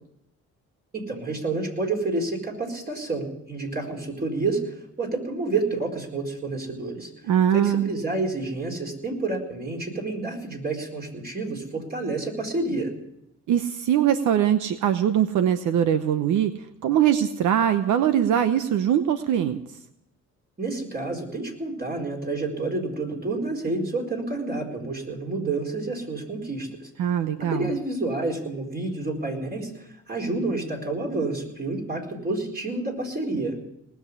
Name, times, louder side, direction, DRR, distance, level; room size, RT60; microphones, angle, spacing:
voice 1, 0.9-7.1 7.5-12.9 20.6-26.9 27.4-33.6, right 3 dB, 30° right, 2 dB, 4.6 m, -29 dB
voice 2, 7.3-7.9 13.5-16.5 16.8-19.6 27.0-27.7, right 10 dB, 80° right, 10 dB, 0.9 m, -22 dB
19.5 x 7.3 x 9.8 m, 0.81 s
cardioid pair, 90°, 30 cm